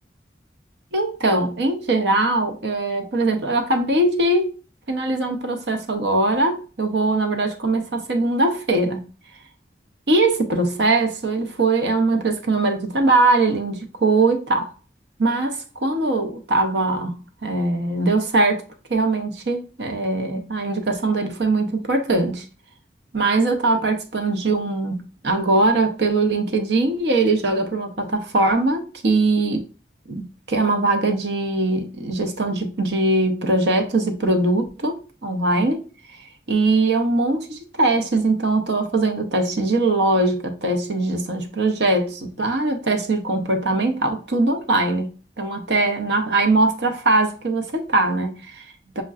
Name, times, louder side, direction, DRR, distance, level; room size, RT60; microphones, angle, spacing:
voice 1, 0.9-4.5 4.9-9.1 10.1-14.7 15.2-18.6 18.9-22.4 23.1-29.6 30.1-35.8 36.5-49.0, right 2 dB, 75° right, 0.7 m, -21 dB
6.3 x 2.2 x 2.3 m
head